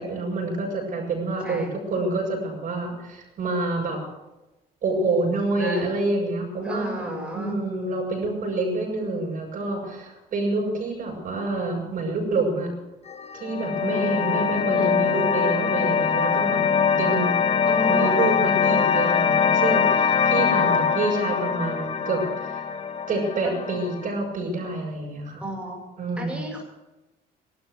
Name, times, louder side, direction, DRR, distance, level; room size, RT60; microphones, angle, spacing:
voice 1, 0.0-4.0 4.8-12.7 13.3-16.6 16.9-17.3 17.9-22.6 23.1-25.4 26.0-26.5, right 2 dB, 55° right, -1 dB, 7.9 m, -27 dB
voice 2, 5.5-5.9 6.6-7.5 14.7-15.0 17.7-18.2 20.6-20.9 23.4-23.5 25.4-25.8 26.2-26.6, right 1 dB, 5° right, -1 dB, 6.6 m, -33 dB
sound 1, 13.1-24.1, left 6 dB, 40° left, 1.6 m, -23 dB
16.5 x 13.0 x 6.6 m, 1.0 s
cardioid pair, 110°, 17 cm